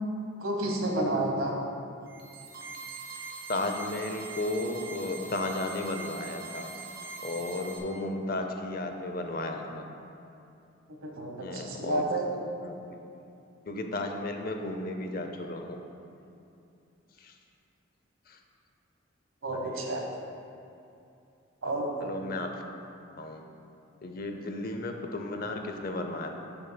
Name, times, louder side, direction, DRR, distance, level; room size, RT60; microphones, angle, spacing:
voice 1, 0.4-1.5 10.9-12.2 19.4-20.0 21.6-22.2, right 1 dB, 85° right, 1 dB, 1.2 m, -30 dB
sound 1, 2.0-7.8, right 4 dB, 45° right, 1.2 m, -43 dB
voice 2, 3.5-6.7 7.2-9.8 11.4-12.0 12.6-13.0 13.7-15.8 17.2-17.3 18.3-18.4 19.5-19.8 22.0-22.6 23.2-23.4 24.0-26.3, left 2 dB, 45° left, 4 dB, 0.6 m, -34 dB
12.5 x 6.8 x 2.3 m, 2.6 s
head